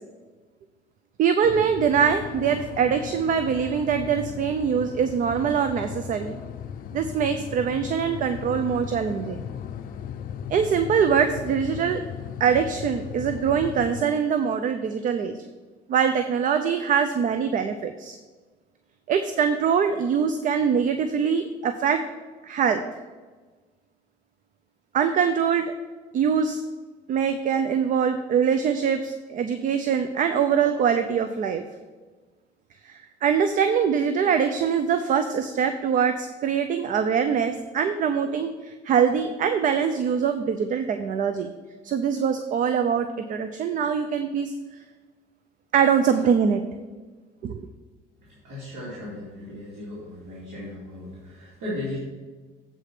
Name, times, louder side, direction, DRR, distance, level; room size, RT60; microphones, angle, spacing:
voice 1, 1.2-6.3 6.9-9.4 10.5-12.0 12.4-15.3 15.9-18.2 19.1-22.0 22.4-22.8 24.9-25.7 26.1-26.6 27.1-31.6 32.9-41.5 41.8-44.5 45.7-46.6 47.4-47.7, right 7 dB, 50° right, 9 dB, 0.5 m, -23 dB
sound 1, 1.4-14.0, left 8 dB, 55° left, 0.5 m, -37 dB
voice 2, 48.2-52.0, left 1 dB, 85° right, -7 dB, 2.5 m, -36 dB
7.6 x 4.9 x 5.9 m, 1.4 s
cardioid pair, 110°, 17 cm